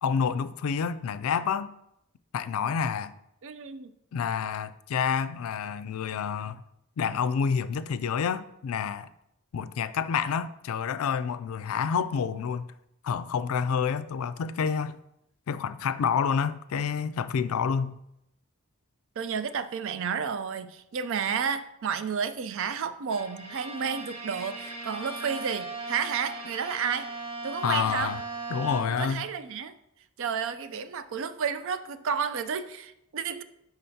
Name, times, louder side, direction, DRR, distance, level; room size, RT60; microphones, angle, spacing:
voice 1, 0.0-1.7 2.3-3.1 4.1-6.6 7.0-9.1 9.5-12.7 13.0-15.0 15.5-18.0 27.6-28.2 28.5-29.3, left 6 dB, 70° left, 0.3 m, -28 dB
voice 2, 3.4-3.9 19.2-27.1 27.4-28.1 29.0-29.7 30.2-33.4, right 6 dB, 60° right, 0.4 m, -31 dB
Bowed string instrument, 23.1-29.2, right 3 dB, 90° right, 1.2 m, -38 dB
10.0 x 4.0 x 2.8 m
head